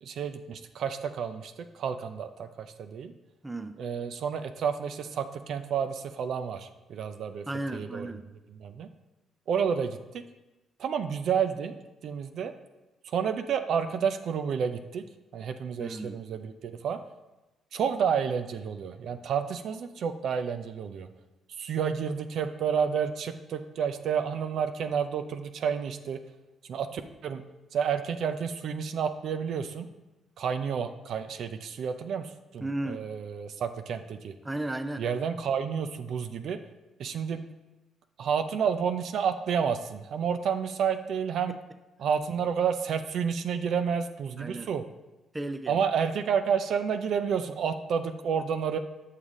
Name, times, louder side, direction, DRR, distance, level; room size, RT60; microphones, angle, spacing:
voice 1, 0.0-3.1 3.8-7.4 7.7-8.1 8.5-8.9 9.5-10.2 10.8-11.7 12.0-12.5 13.0-15.0 15.3-17.0 17.7-21.1 21.6-26.2 26.7-27.4 27.7-29.9 30.4-34.3 35.0-36.6 37.0-37.4 38.2-41.6 42.0-44.8 45.7-48.8, right 7 dB, 70° right, 9 dB, 0.5 m, -30 dB
voice 2, 3.4-3.8 7.5-8.2 15.8-16.2 32.6-33.0 34.4-35.1 41.5-41.6 44.4-44.7 45.3-45.8, right 2 dB, 15° right, 9 dB, 0.5 m, -34 dB
7.0 x 6.5 x 3.7 m, 1.1 s
cardioid pair, 90°, 0 cm